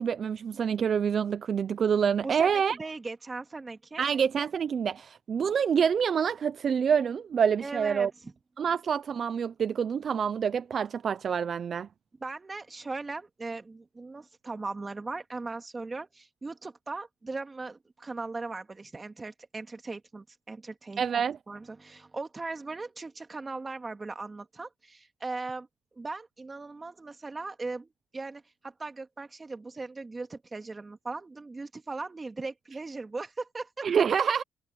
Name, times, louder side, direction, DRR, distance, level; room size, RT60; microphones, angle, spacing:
voice 1, 0.0-2.8 4.0-8.1 8.6-11.9 21.0-21.4 33.8-34.4, right 7 dB, 50° right, 0.6 m, -27 dB
voice 2, 2.2-4.1 7.6-8.3 12.2-21.0 21.5-25.7 25.9-33.9, right 3 dB, 25° right, 2.5 m, -38 dB
cardioid pair, 90°, 0 cm